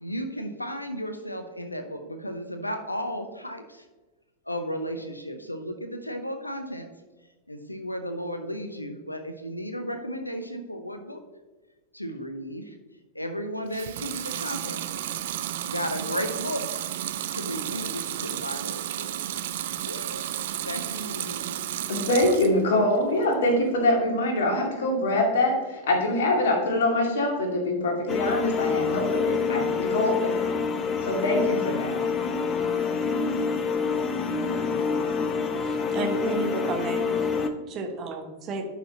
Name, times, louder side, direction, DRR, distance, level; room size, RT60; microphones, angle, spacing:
voice 1, 0.0-3.8 4.5-6.9 7.5-11.2 11.9-12.7 13.1-15.0 15.7-16.9 17.3-19.2 19.9-20.2 20.6-21.6, equal, 85° left, 7 dB, 0.6 m, -34 dB
Water tap faucet / Sink (filling or washing) / Liquid, 13.7-22.6 23.0-23.7, right 12 dB, 55° right, 0.5 m, -32 dB
voice 2, 21.9-30.5 31.0-32.0 34.4-34.7, left 1 dB, 60° left, 1 dB, 2.1 m, -24 dB
sound 1, 28.1-37.5, left 5 dB, 25° left, 0.8 m, -27 dB
voice 3, 35.6-37.0 37.7-38.7, right 3 dB, 30° right, 4 dB, 1.3 m, -32 dB
11.0 x 5.7 x 2.8 m, 1.2 s
figure-of-eight pair, 90°, 0 cm